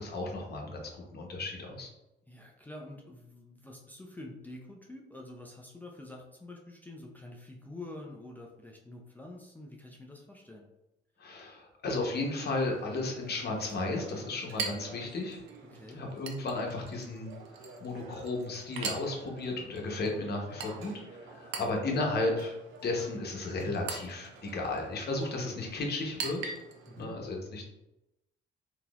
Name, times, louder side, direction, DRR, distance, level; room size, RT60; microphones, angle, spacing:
voice 1, 0.0-1.9 11.2-15.4 15.9-17.3 17.8-22.5 22.8-26.5 27.0-27.7, left 2 dB, 55° left, 1 dB, 0.9 m, -34 dB
voice 2, 2.3-10.6 15.6-16.0 26.9-27.2, left 2 dB, 10° left, -1 dB, 0.5 m, -47 dB
Chink clink, 12.1-27.0, right 5 dB, 85° right, 0.5 m, -44 dB
3.7 x 2.9 x 2.4 m, 0.94 s
cardioid pair, 90°, 20 cm